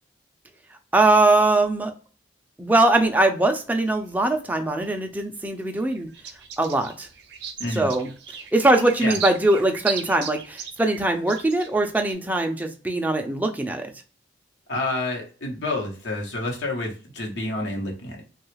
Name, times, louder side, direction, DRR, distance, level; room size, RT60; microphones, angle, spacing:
voice 1, 0.9-1.9 2.6-6.1 6.6-7.1 7.7-8.1 8.5-13.9, right 2 dB, 10° right, 4 dB, 0.4 m, -21 dB
sound 1, 3.7-5.2 5.5-12.1, right 7 dB, 65° right, 0.6 m, -37 dB
voice 2, 7.6-7.9 9.0-9.2 14.7-18.2, left 2 dB, 80° left, 0 dB, 0.9 m, -29 dB
3.3 x 2.3 x 3.1 m, 0.38 s
head